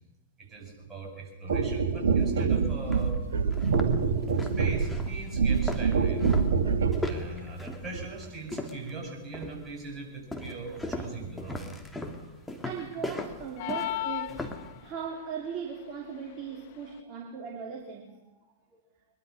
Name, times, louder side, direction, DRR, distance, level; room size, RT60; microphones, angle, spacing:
voice 1, 0.4-3.2 4.4-6.3 7.0-11.7, right 3 dB, 20° right, 7.9 m, -40 dB
sound 1, 1.5-7.1 7.9-8.1, right 5 dB, 65° right, 2.5 m, -26 dB
sound 2, 2.3-2.4 2.9-3.0 3.5-9.0 9.3-9.7 10.3-14.7, left 1 dB, 5° left, 2.7 m, -37 dB
voice 2, 12.6-18.4, right 6 dB, 35° right, 3.0 m, -39 dB
sound 3, 13.6-15.0, left 16 dB, 50° left, 1.2 m, -34 dB
23.5 x 22.0 x 6.5 m
figure-of-eight pair, 105°, 0 cm